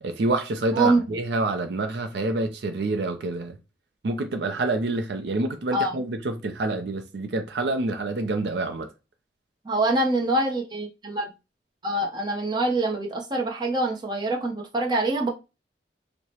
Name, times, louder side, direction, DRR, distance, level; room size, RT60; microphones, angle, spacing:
voice 1, 0.0-3.6 4.0-8.9, right 2 dB, 70° right, 0.5 m, -27 dB
voice 2, 0.7-1.0 5.7-5.9 9.6-11.3 11.8-15.3, right 2 dB, 25° right, 0.7 m, -24 dB
4.7 x 2.1 x 2.8 m
head